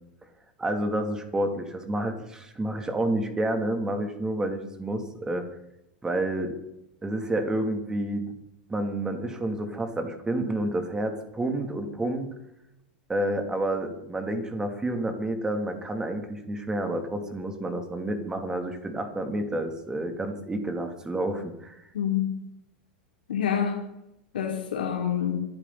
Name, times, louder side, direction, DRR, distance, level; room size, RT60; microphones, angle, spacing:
voice 1, 0.6-5.5 6.0-6.5 7.0-8.3 8.7-12.3 13.1-21.8, right 1 dB, 15° right, 5 dB, 3.2 m, -29 dB
voice 2, 21.9-22.3 23.3-23.8 24.3-25.4, left 9 dB, 80° left, 1 dB, 3.7 m, -27 dB
27.0 x 10.5 x 4.3 m, 0.87 s
hypercardioid pair, 100°, 5 cm